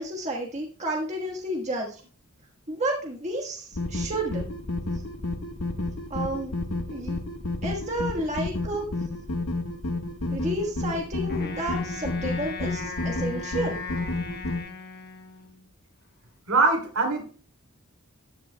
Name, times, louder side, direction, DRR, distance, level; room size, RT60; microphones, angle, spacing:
voice 1, 0.0-2.0 2.7-4.5 6.1-6.5 6.9-7.1 7.6-8.8 10.3-13.8, right 1 dB, 30° right, -1 dB, 1.4 m, -31 dB
sound 1, 3.7-14.6, left 2 dB, 85° left, 1.4 m, -31 dB
Wind instrument woodwind instrument, 11.3-15.7, left 4 dB, 45° left, 1.4 m, -38 dB
voice 2, 16.5-17.3, right 3 dB, 70° right, 2 dB, 3.1 m, -22 dB
13.5 x 10.0 x 2.2 m, 0.40 s
head